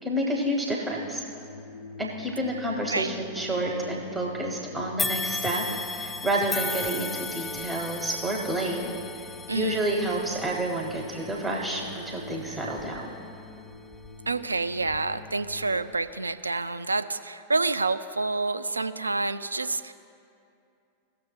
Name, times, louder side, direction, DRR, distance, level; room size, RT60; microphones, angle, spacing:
voice 1, 0.0-1.2 2.0-8.9 9.5-13.1, right 1 dB, 10° right, -1 dB, 1.1 m, -29 dB
sound 1, 1.0-15.8, left 3 dB, 65° left, 1.7 m, -45 dB
sound 2, 5.0-14.3 14.8-15.0 15.9-16.0, left 4 dB, 10° left, 0.3 m, -36 dB
voice 2, 9.5-9.8 14.3-19.9, right 3 dB, 80° right, 12 dB, 0.3 m, -28 dB
18.0 x 6.6 x 2.3 m, 2.6 s
figure-of-eight pair, 90°, 0 cm